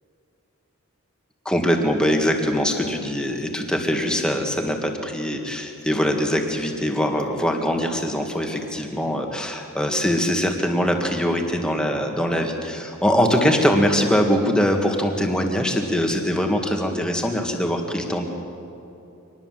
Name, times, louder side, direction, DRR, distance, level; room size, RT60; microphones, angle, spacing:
voice 1, 1.5-18.3, equal, 5° left, 2 dB, 1.9 m, -22 dB
25.0 x 19.5 x 7.5 m, 2.9 s
head